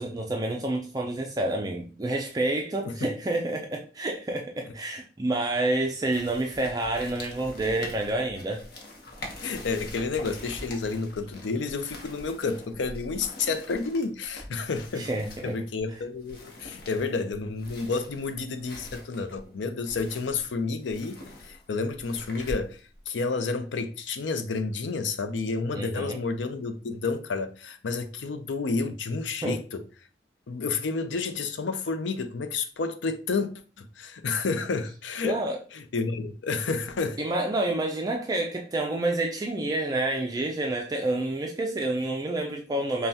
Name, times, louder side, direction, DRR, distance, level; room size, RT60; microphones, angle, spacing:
voice 1, 0.0-8.6 14.9-15.6 25.7-26.2 29.4-29.6 35.2-35.6 37.2-43.1, right 2 dB, 20° right, 0.3 m, -28 dB
sound 1, 6.1-23.0, left 1 dB, 55° left, 0.9 m, -44 dB
voice 2, 9.4-15.1 15.4-21.2 21.4-22.8 23.1-29.8 30.5-35.4 35.7-37.2, left 4 dB, 85° left, 0.5 m, -30 dB
5.4 x 2.2 x 2.8 m
head